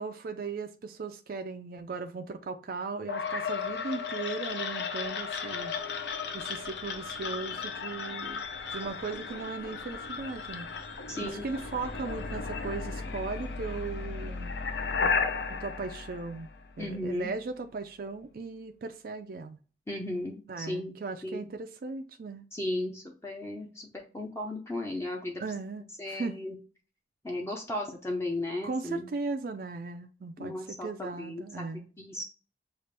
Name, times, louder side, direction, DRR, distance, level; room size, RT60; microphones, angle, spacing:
voice 1, 0.0-5.7 6.3-8.4 8.7-10.7 11.2-14.5 15.5-16.5 16.8-19.6 20.5-22.4 25.4-26.4 28.6-31.9, right 4 dB, 55° right, 0.4 m, -37 dB
sound 1, 3.1-17.0, left 5 dB, 70° left, 0.6 m, -35 dB
voice 2, 11.1-11.4 16.8-17.3 19.9-20.9 21.2-21.4 22.5-25.4 26.0-26.6 27.2-29.1 30.4-31.6 32.0-32.2, left 1 dB, 15° left, 0.6 m, -35 dB
6.5 x 2.4 x 3.3 m
head